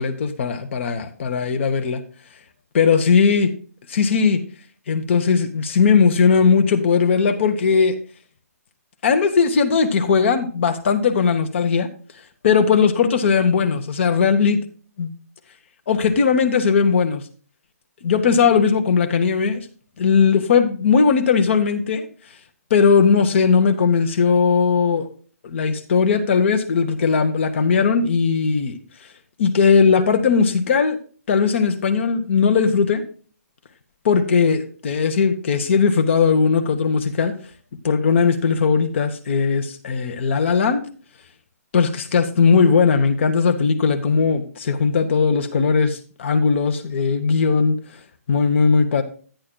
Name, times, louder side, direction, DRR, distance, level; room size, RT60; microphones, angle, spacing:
voice 1, 0.0-2.0 2.7-3.5 3.9-4.4 4.9-8.0 9.0-11.9 12.4-14.6 15.0-15.1 15.9-17.2 18.0-19.6 20.0-22.1 22.7-25.1 25.4-28.8 29.4-31.0 31.3-33.0 34.0-37.3 37.8-40.8 41.7-47.8 48.3-49.0, left 5 dB, 45° left, 7 dB, 1.0 m, -18 dB
10.5 x 10.0 x 2.2 m, 0.41 s
hypercardioid pair, 160°, 9 cm